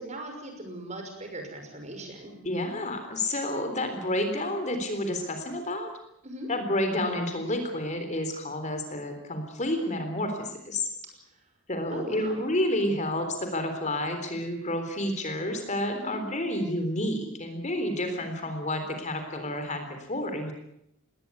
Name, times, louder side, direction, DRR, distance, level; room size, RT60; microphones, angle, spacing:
voice 1, 0.0-2.4 6.2-6.5 9.8-10.0 11.9-12.4 15.9-16.2, right 1 dB, 35° right, 4 dB, 5.9 m, -40 dB
voice 2, 2.4-5.9 6.5-10.9 11.7-20.5, left 1 dB, 35° left, 6 dB, 3.7 m, -30 dB
20.5 x 18.5 x 9.5 m, 0.79 s
head